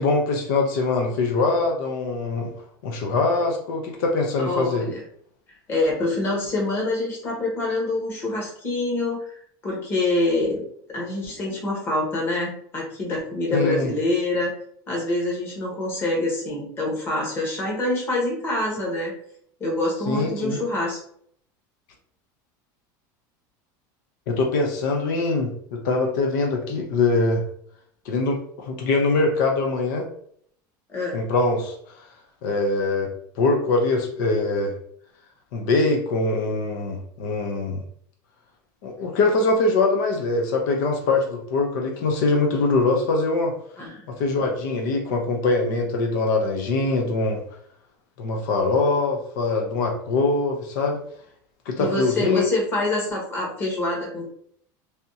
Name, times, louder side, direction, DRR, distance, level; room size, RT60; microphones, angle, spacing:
voice 1, 0.0-2.5 2.8-4.9 13.5-13.9 20.1-20.6 24.3-27.4 28.1-30.1 31.1-31.7 32.4-33.1 33.4-34.7 35.5-37.8 38.8-43.5 44.1-47.4 48.2-51.0 51.7-52.5, left 3 dB, 75° left, 2 dB, 0.7 m, -23 dB
voice 2, 4.4-5.0 5.7-9.4 9.6-14.5 14.9-19.1 19.6-21.0 30.9-31.2 43.8-44.0 51.8-54.2, left 2 dB, 25° left, -3 dB, 1.1 m, -26 dB
3.4 x 2.8 x 2.7 m, 0.65 s
cardioid pair, 165°, 10 cm